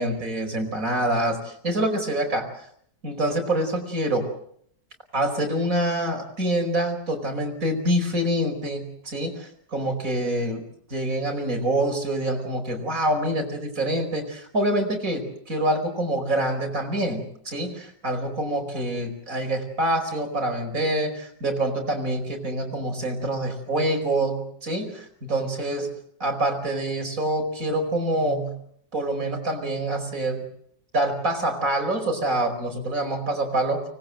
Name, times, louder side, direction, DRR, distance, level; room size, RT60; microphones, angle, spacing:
voice 1, 0.0-2.5 3.0-4.3 5.1-10.6 10.9-25.9 26.2-28.6 28.9-30.4 30.9-33.8, right 1 dB, 45° right, 4 dB, 5.4 m, -26 dB
24.5 x 20.5 x 7.8 m, 0.67 s
omnidirectional pair, 1.9 m